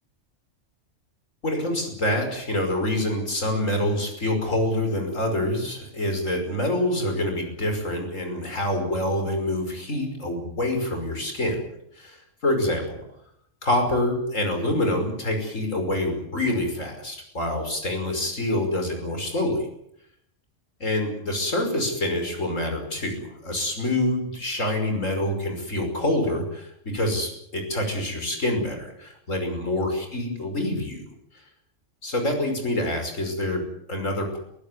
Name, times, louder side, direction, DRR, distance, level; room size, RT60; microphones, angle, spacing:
voice 1, 1.4-11.6 12.0-12.2 12.4-13.0 13.6-19.7 20.8-31.0 32.0-34.4, left 1 dB, 80° left, 4 dB, 5.8 m, -26 dB
23.0 x 16.0 x 9.7 m, 0.75 s
omnidirectional pair, 1.3 m